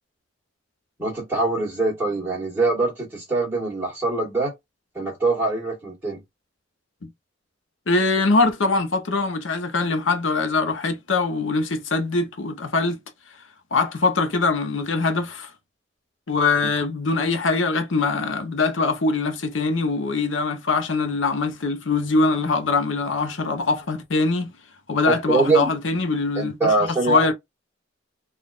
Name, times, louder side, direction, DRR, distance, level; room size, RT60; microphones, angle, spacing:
voice 1, 1.0-4.5 4.9-6.2 16.6-16.7 25.3-25.7 26.3-27.3, right 3 dB, 10° right, 1.4 m, -23 dB
voice 2, 7.9-13.0 13.7-15.5 16.3-24.5 24.9-26.5 27.1-27.3, left 3 dB, 80° left, 0.8 m, -22 dB
4.0 x 2.4 x 2.4 m
head